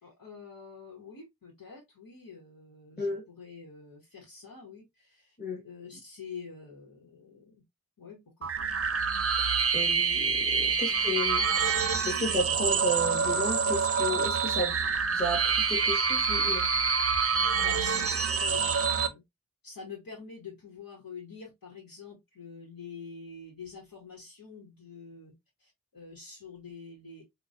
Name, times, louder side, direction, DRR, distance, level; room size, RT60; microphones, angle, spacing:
voice 1, 0.0-5.4 5.6-7.6 8.0-8.7 10.7-11.0 17.6-19.2 19.6-27.2, left 5 dB, 90° left, 1.2 m, -47 dB
sound 1, 8.4-19.1, right 5 dB, 45° right, 0.6 m, -27 dB
voice 2, 9.7-11.5 12.0-16.7, left 1 dB, 30° left, 1.5 m, -33 dB
4.5 x 2.3 x 2.6 m
wide cardioid pair, 60°, 34 cm